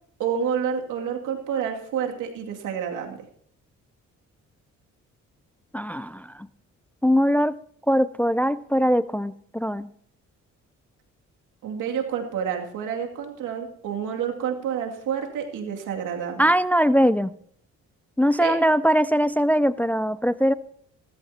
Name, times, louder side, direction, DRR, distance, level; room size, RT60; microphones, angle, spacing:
voice 1, 0.2-3.2 11.6-16.4 18.4-18.6, right 8 dB, 85° right, 2 dB, 2.5 m, -29 dB
voice 2, 5.7-6.3 7.0-7.6 7.9-9.9 16.4-17.3 18.2-20.5, equal, 5° left, 15 dB, 0.4 m, -21 dB
17.5 x 14.0 x 2.8 m, 0.62 s
cardioid pair, 90°, 30 cm